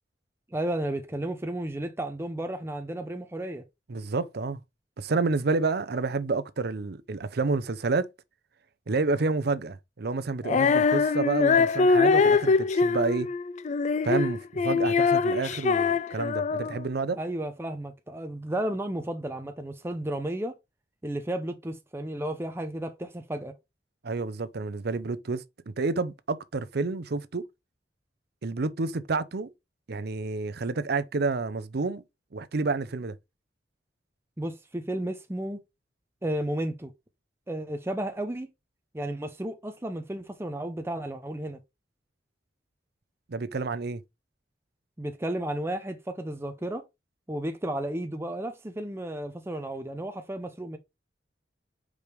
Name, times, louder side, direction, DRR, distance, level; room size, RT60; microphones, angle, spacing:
voice 1, 0.5-3.6 17.2-20.6 21.0-23.5 34.4-35.6 36.2-36.9 37.5-38.5 38.9-41.6 45.0-46.8 47.3-50.8, right 1 dB, 15° right, 0.7 m, -33 dB
voice 2, 3.9-4.6 5.0-8.1 8.9-13.3 14.0-17.2 24.0-27.4 28.4-29.5 29.9-32.0 32.3-33.1 43.3-44.0, right 3 dB, 60° right, 0.6 m, -29 dB
Female singing, 10.4-16.9, left 4 dB, 40° left, 0.3 m, -23 dB
5.2 x 5.0 x 4.6 m
head